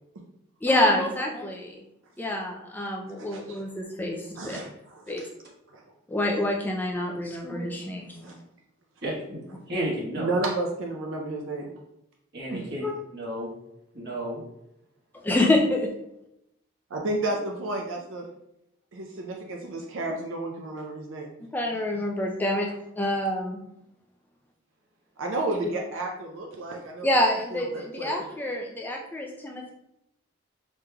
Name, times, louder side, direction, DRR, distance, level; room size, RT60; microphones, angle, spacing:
voice 1, 0.6-1.8 2.2-4.6 5.1-5.2 6.1-8.3 12.8-12.9 15.2-15.9 21.5-22.7 23.0-23.6 27.0-29.7, left 1 dB, 10° left, 0 dB, 0.3 m, -27 dB
voice 2, 3.2-3.6 4.4-5.0 5.7-5.8 8.2-8.3 10.2-11.7 12.5-12.6 16.9-18.3 18.9-21.3 25.2-27.1 27.5-28.3, right 2 dB, 70° right, 1 dB, 0.5 m, -32 dB
voice 3, 9.0-9.4 9.7-10.3 12.3-13.5 13.9-14.4, right 1 dB, 55° right, -4 dB, 1.3 m, -32 dB
5.1 x 3.0 x 2.2 m, 0.82 s
head